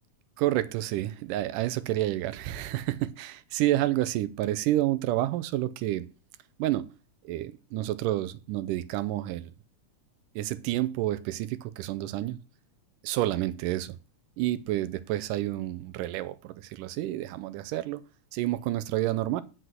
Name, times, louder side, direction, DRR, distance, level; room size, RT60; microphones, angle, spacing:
voice 1, 0.4-6.1 6.6-6.9 7.2-9.5 10.4-12.4 13.0-14.0 14.4-18.0 18.3-19.4, right 15 dB, 85° right, 2.2 m, -29 dB
8.0 x 6.2 x 7.7 m
omnidirectional pair, 3.7 m